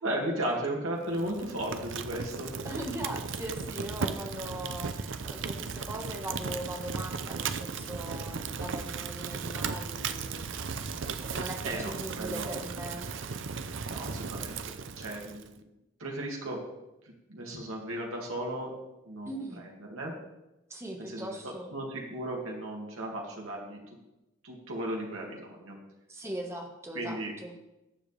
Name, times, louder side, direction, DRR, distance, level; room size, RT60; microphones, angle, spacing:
voice 1, 0.0-2.5 11.6-12.6 13.9-14.6 15.0-15.6 16.0-16.6 17.3-18.7 19.0-20.1 21.0-23.8 24.4-25.8 26.9-27.3, right 1 dB, 90° right, -1 dB, 2.3 m, -35 dB
Fire, 1.1-15.5, right 5 dB, 65° right, 0.6 m, -36 dB
voice 2, 2.6-10.6 11.2-13.1 19.2-19.7 20.7-21.7 26.1-27.5, right 1 dB, 15° right, 1 dB, 1.5 m, -40 dB
19.5 x 7.4 x 3.4 m, 0.95 s
head